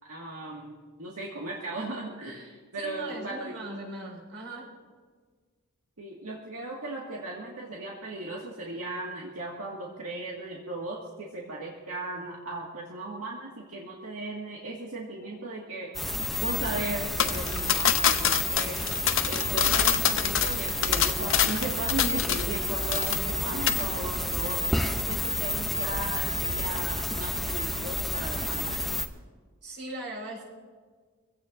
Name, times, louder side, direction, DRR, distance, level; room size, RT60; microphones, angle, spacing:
voice 1, 0.0-3.6 6.0-15.9 16.4-18.8 19.3-28.9, right 2 dB, 80° right, -3 dB, 1.9 m, -37 dB
voice 2, 2.8-4.7 29.6-30.4, right 1 dB, 55° right, -2 dB, 5.4 m, -39 dB
sound 1, 15.9-29.1, left 1 dB, ahead, 0.6 m, -30 dB
sound 2, 17.2-22.6 22.9-23.4 23.7-23.8, left 9 dB, 60° left, 0.8 m, -26 dB
25.0 x 16.5 x 2.6 m, 1.5 s
head